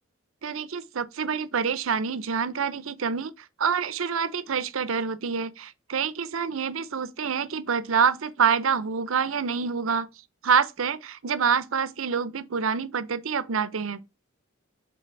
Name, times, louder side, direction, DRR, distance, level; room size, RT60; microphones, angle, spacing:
voice 1, 0.4-3.3 3.6-10.1 10.4-14.0, right 6 dB, 75° right, 0.6 m, -26 dB
5.9 x 3.9 x 5.7 m
head